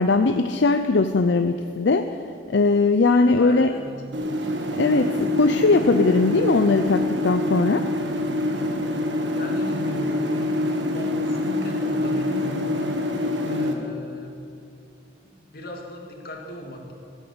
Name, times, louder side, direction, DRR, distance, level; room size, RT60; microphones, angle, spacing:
voice 1, 0.0-2.2 2.5-3.7 4.8-7.8, left 3 dB, 80° left, 7 dB, 0.6 m, -20 dB
voice 2, 3.2-4.0 9.3-13.1 13.4-14.3 15.2-16.9, left 1 dB, 55° left, 1 dB, 2.4 m, -38 dB
sound 1, 4.1-13.7, left 1 dB, 80° right, 1.6 m, -25 dB
16.0 x 8.9 x 8.0 m, 2.5 s
head